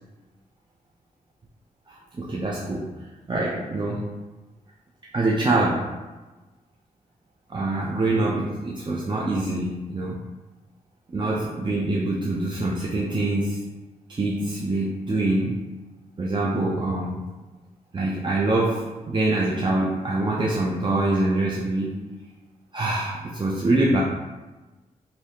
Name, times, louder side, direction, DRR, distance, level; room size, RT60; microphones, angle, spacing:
voice 1, 2.2-2.9 3.3-4.1 5.1-5.9 7.5-10.2 11.1-13.6 14.1-15.6 16.2-17.2 17.9-22.0 22.7-24.0, right 2 dB, 35° right, -4 dB, 0.5 m, -24 dB
3.3 x 2.7 x 2.8 m, 1.2 s
cardioid pair, 50°, 15 cm